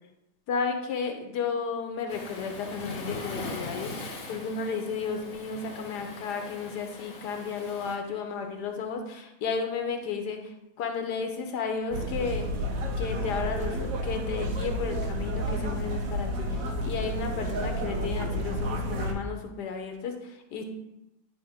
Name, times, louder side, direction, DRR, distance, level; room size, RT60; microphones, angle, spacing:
voice 1, 0.5-12.5 13.0-20.6, left 5 dB, 85° left, 4 dB, 1.5 m, -33 dB
Waves surf, 2.1-8.0, left 2 dB, 60° left, 1.4 m, -40 dB
sound 1, 11.9-19.1, equal, 60° right, 1.1 m, -31 dB
10.0 x 3.5 x 5.0 m, 0.89 s
omnidirectional pair, 1.7 m